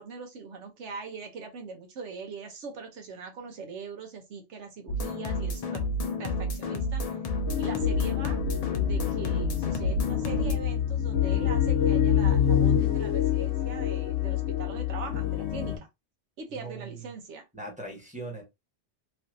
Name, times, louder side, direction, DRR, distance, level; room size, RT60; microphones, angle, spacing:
voice 1, 0.0-5.8 6.2-7.2 7.6-15.8 16.4-17.4, right 5 dB, 85° right, 1.1 m, -41 dB
sound 1, 4.9-10.5, left 1 dB, 50° left, 0.5 m, -30 dB
sound 2, 7.5-15.8, left 10 dB, 70° left, 1.0 m, -26 dB
voice 2, 17.5-18.4, right 2 dB, 5° right, 1.1 m, -39 dB
3.1 x 2.6 x 2.5 m
omnidirectional pair, 1.2 m